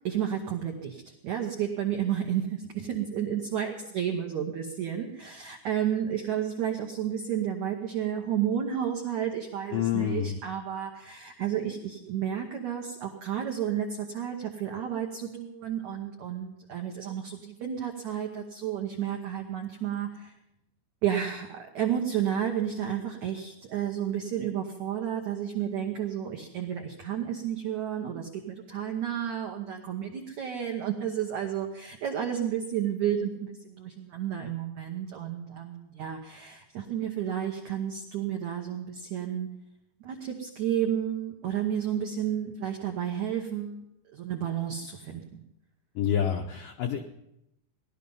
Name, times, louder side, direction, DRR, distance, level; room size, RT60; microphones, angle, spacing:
voice 1, 0.0-20.3 21.0-39.5 40.0-43.8 44.1-45.4, right 9 dB, 80° right, 2 dB, 1.6 m, -31 dB
voice 2, 9.7-10.4 46.0-47.0, left 9 dB, 90° left, 4 dB, 1.9 m, -28 dB
17.5 x 12.0 x 5.5 m, 0.85 s
omnidirectional pair, 5.1 m